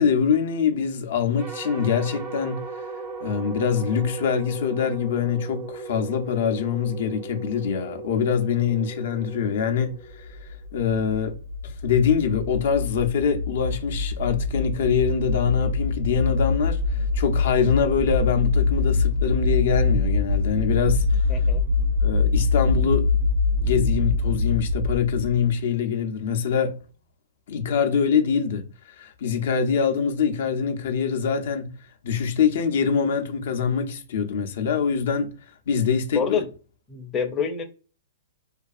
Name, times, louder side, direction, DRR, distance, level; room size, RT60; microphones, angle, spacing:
voice 1, 0.0-2.6 3.2-11.4 11.6-21.3 22.0-23.1 23.6-26.8 27.5-31.7 32.0-35.3 35.7-36.2, left 7 dB, 65° left, 0.5 m, -24 dB
sound 1, 1.4-10.7, right 3 dB, 30° right, 0.6 m, -37 dB
sound 2, 10.2-25.5, left 4 dB, 70° right, 0.5 m, -24 dB
voice 2, 21.3-21.6 36.1-36.5 36.9-37.6, left 6 dB, 20° left, 0.5 m, -26 dB
2.4 x 2.3 x 2.4 m
hypercardioid pair, 130°, 0 cm